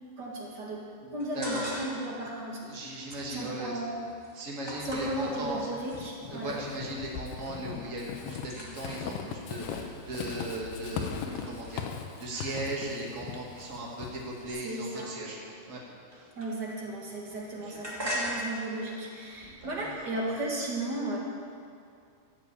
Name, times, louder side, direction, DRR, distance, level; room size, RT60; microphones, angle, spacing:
voice 1, 0.2-3.0 3.3-4.0 4.8-6.6 14.6-15.1 16.3-21.2, right 1 dB, 40° right, -3 dB, 1.6 m, -35 dB
voice 2, 1.0-1.7 2.7-3.8 4.3-5.6 6.3-15.4 15.7-15.8 16.1-16.3 17.5-17.8 19.4-19.7, right 1 dB, 75° right, -2 dB, 0.7 m, -38 dB
sound 1, 1.2-2.2 2.5-6.0 6.5-7.0 7.2-7.7 8.0-13.0 13.7-16.9 17.2-20.4, equal, 15° right, 0.8 m, -42 dB
Walk footsteps / Squeak, 4.9-14.5, left 7 dB, 75° left, 2.7 m, -39 dB
14.0 x 8.9 x 8.4 m, 2.4 s
omnidirectional pair, 4.7 m